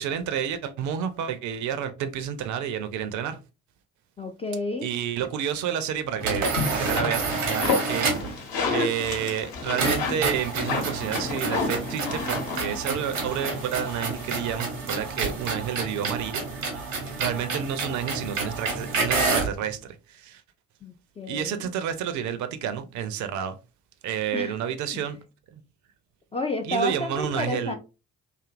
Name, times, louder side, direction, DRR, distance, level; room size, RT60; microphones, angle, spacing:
voice 1, 0.0-3.4 4.8-16.4 17.2-20.4 21.3-23.6 24.0-25.2 25.5-25.6 26.6-27.8, right 8 dB, 50° right, 0.5 m, -30 dB
voice 2, 4.2-4.9 20.8-21.7 24.3-24.6 24.9-25.0 26.3-27.7, left 1 dB, 15° left, 0.3 m, -31 dB
sound 1, 6.2-8.4 9.8-19.6, right 4 dB, 80° right, 0.9 m, -29 dB
sound 2, 6.5-14.5, left 4 dB, 60° left, 1.0 m, -31 dB
2.7 x 2.5 x 2.4 m
figure-of-eight pair, 45°, 38 cm